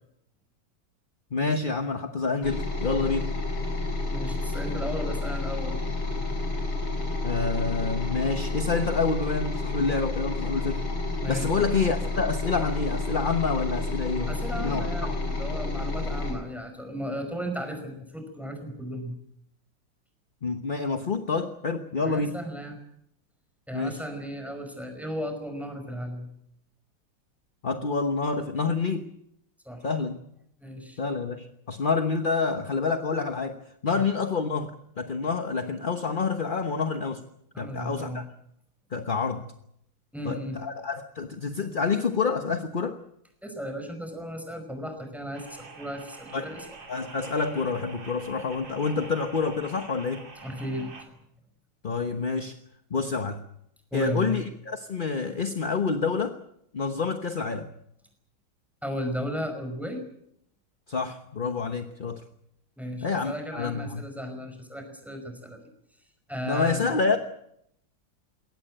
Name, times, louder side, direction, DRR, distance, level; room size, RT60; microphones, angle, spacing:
voice 1, 1.3-3.3 7.2-10.8 11.3-15.2 20.4-22.4 23.7-24.0 27.6-29.1 29.8-30.2 31.0-37.2 37.6-38.2 38.9-39.4 40.2-43.0 46.3-46.5 46.9-50.2 51.8-52.6 52.9-53.4 53.9-56.4 56.7-57.7 60.9-62.2 63.0-64.0 66.4-67.2, left 4 dB, 35° left, 7 dB, 0.9 m, -28 dB
sound 1, 2.4-16.3, left 3 dB, 80° left, 7.4 m, -30 dB
voice 2, 4.1-5.8 11.2-11.6 14.3-19.1 22.0-22.8 23.7-26.3 29.6-29.9 30.6-31.0 33.9-34.0 37.5-38.2 40.1-40.6 43.4-46.6 50.4-51.2 53.9-54.4 58.8-60.0 62.8-65.6 66.3-66.9, equal, ahead, 6 dB, 5.1 m, -35 dB
sound 2, 45.3-51.1, right 4 dB, 65° right, 3.6 m, -45 dB
21.5 x 18.0 x 8.9 m, 0.76 s
omnidirectional pair, 2.2 m